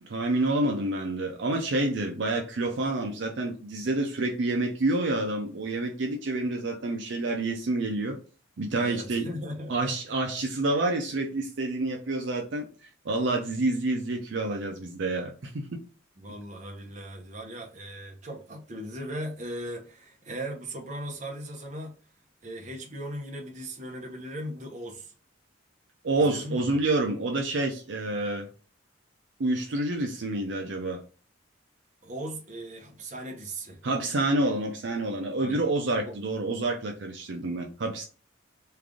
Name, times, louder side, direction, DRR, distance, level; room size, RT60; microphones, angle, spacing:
voice 1, 0.0-8.2 8.6-9.3 9.7-15.8 26.0-28.5 29.4-31.0 33.8-38.0, right 2 dB, 65° right, 0.5 m, -28 dB
voice 2, 8.8-9.7 16.2-21.9 22.4-25.1 26.2-26.8 32.0-33.8 35.4-35.6 36.1-36.2, equal, 40° right, 0.8 m, -38 dB
3.3 x 2.5 x 3.5 m
head